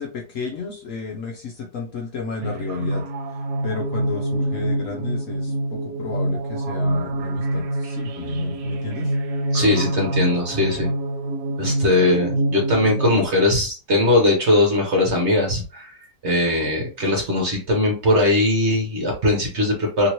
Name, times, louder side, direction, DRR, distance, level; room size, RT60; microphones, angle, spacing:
voice 1, 0.0-3.0 3.6-5.5 5.8-9.1, left 5 dB, 60° left, 0 dB, 0.9 m, -32 dB
sound 1, 2.4-13.3, right 1 dB, 75° right, 1.1 m, -25 dB
voice 2, 9.5-10.9 11.6-15.9 16.2-20.1, left 2 dB, 50° right, 0 dB, 0.9 m, -20 dB
3.0 x 2.9 x 2.8 m, 0.36 s
omnidirectional pair, 1.8 m